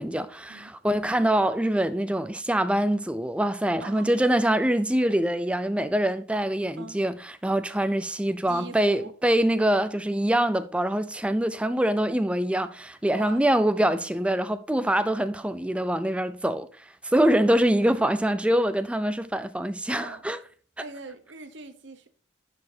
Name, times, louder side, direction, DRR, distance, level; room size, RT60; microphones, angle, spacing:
voice 1, 0.0-20.4, right 1 dB, 5° right, 0.3 m, -24 dB
voice 2, 3.8-4.2 6.8-7.0 8.5-9.1 13.1-13.5 19.9-20.2 20.8-22.1, right 3 dB, 60° right, 0.9 m, -41 dB
10.5 x 4.8 x 2.7 m
head